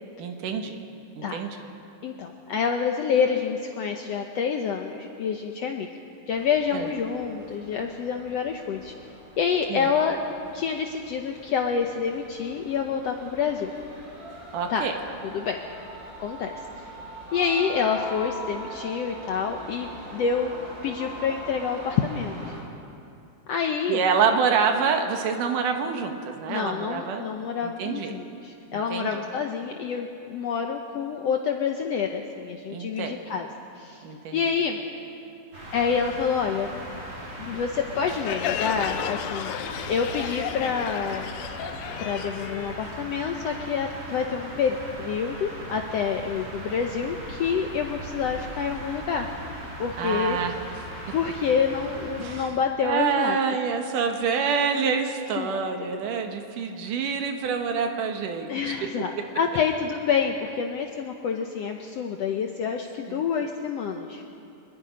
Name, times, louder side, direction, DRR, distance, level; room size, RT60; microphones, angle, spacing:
voice 1, 0.2-0.8 1.2-1.6 6.7-6.9 9.7-9.9 14.5-14.9 23.9-27.2 27.8-28.1 28.7-29.2 32.7-33.2 34.0-34.4 50.0-50.5 52.2-52.5 52.8-58.7 63.1-63.2, right 6 dB, 75° right, 5 dB, 2.8 m, -26 dB
voice 2, 2.0-5.9 6.3-8.9 9.4-10.2 10.5-13.7 14.7-14.8 15.3-15.6 16.2-16.9 17.3-22.4 23.5-24.0 26.5-33.5 33.8-34.0 34.3-34.8 35.7-36.7 37.4-39.5 39.9-41.3 42.0-49.3 49.8-50.4 51.1-53.4 55.4-55.5 58.5-64.3, left 6 dB, 75° left, 3 dB, 1.5 m, -27 dB
sound 1, 6.3-22.6, right 1 dB, 25° right, 3.3 m, -42 dB
sound 2, 35.5-52.4, right 1 dB, 40° right, 4.9 m, -39 dB
Crowd, 38.1-43.5, left 10 dB, 90° left, 1.5 m, -33 dB
24.0 x 21.0 x 5.2 m, 2.6 s
omnidirectional pair, 3.9 m